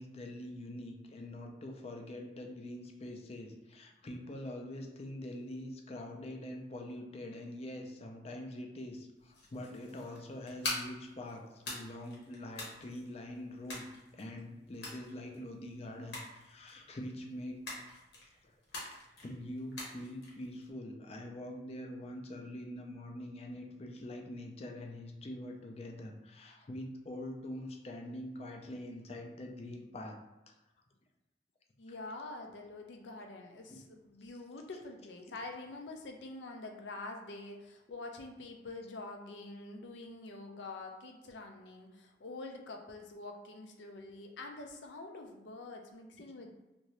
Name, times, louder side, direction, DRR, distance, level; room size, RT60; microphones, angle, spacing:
voice 1, 0.0-13.9 14.1-17.8 18.8-30.3 33.7-33.8, left 1 dB, 35° left, 2 dB, 0.4 m, -44 dB
sound 1, 9.2-20.7, left 2 dB, 70° left, 1.0 m, -45 dB
voice 2, 31.8-46.5, left 2 dB, 90° left, 3 dB, 0.5 m, -46 dB
2.8 x 2.6 x 3.1 m, 1.0 s
head